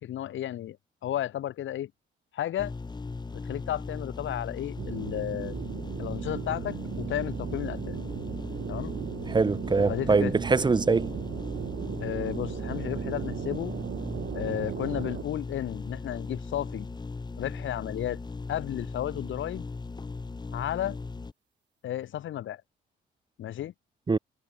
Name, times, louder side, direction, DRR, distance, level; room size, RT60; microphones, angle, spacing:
voice 1, 0.0-0.8 1.0-1.9 2.3-2.7 3.3-5.6 6.0-8.0 8.7-8.9 9.9-10.3 12.0-13.7 14.3-16.9 17.4-18.2 18.5-19.7 20.5-21.0 21.8-22.6 23.4-23.7, left 12 dB, 75° left, 5.2 m, -33 dB
sound 1, 2.6-21.3, left 3 dB, 20° left, 1.3 m, -38 dB
sound 2, 4.8-15.2, right 9 dB, 65° right, 5.7 m, -36 dB
voice 2, 9.3-11.1 24.1-24.2, right 4 dB, 20° right, 0.9 m, -23 dB
cardioid pair, 90°, 20 cm